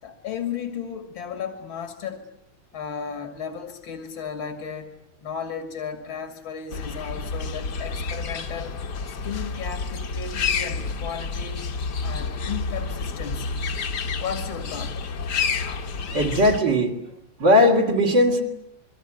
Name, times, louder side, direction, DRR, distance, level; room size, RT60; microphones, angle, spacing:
voice 1, 0.0-2.2 2.7-4.9 5.2-8.8 9.1-11.6 12.0-13.6 14.2-15.1, left 7 dB, 75° left, 7 dB, 3.1 m, -34 dB
sound 1, 6.7-16.6, left 5 dB, 55° left, 1.9 m, -29 dB
voice 2, 16.1-17.0 17.4-18.4, left 1 dB, 60° right, 0 dB, 3.5 m, -18 dB
27.5 x 23.0 x 9.2 m, 0.76 s
omnidirectional pair, 2.2 m